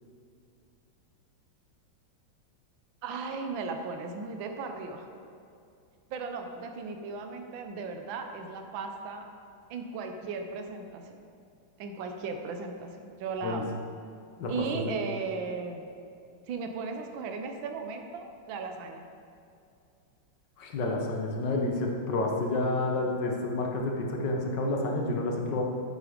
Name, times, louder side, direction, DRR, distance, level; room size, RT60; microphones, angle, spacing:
voice 1, 3.0-5.1 6.1-9.3 9.7-11.2 11.8-13.7 14.5-15.9 16.5-19.0, right 4 dB, 75° right, 4 dB, 1.6 m, -36 dB
voice 2, 14.4-15.0 20.6-25.6, left 2 dB, 65° left, 0 dB, 1.8 m, -29 dB
9.4 x 7.5 x 5.1 m, 2.5 s
omnidirectional pair, 2.2 m